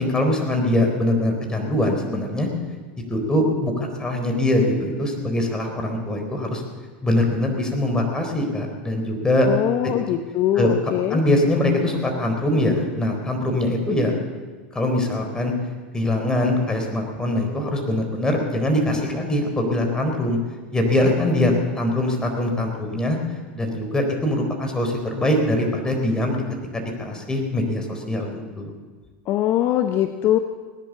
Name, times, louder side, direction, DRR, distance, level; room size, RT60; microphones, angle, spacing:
voice 1, 0.0-2.5 3.1-6.6 7.0-9.5 10.0-10.1 10.6-10.7 11.1-14.1 14.7-15.5 15.9-20.4 20.7-23.2 23.5-26.4 26.7-28.7, left 1 dB, 15° left, 2 dB, 4.0 m, -22 dB
voice 2, 9.4-11.2 29.3-30.4, left 12 dB, 45° left, 7 dB, 0.9 m, -22 dB
18.5 x 10.5 x 7.0 m, 1.4 s
hypercardioid pair, 100°, 6 cm